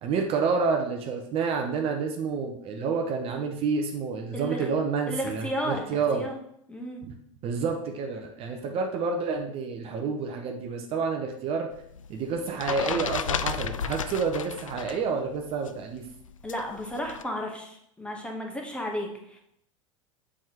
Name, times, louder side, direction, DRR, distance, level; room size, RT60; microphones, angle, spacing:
voice 1, 0.0-6.2 7.1-7.2 7.4-11.7 12.1-16.0, right 5 dB, 35° right, 2 dB, 0.8 m, -29 dB
voice 2, 4.3-4.7 5.1-6.3 6.7-7.0 16.4-19.4, equal, 5° left, 1 dB, 1.1 m, -33 dB
sound 1, 11.7-15.1 15.3-17.2, left 7 dB, 75° left, 0.4 m, -33 dB
7.4 x 4.9 x 2.9 m, 0.74 s
figure-of-eight pair, 85°, 17 cm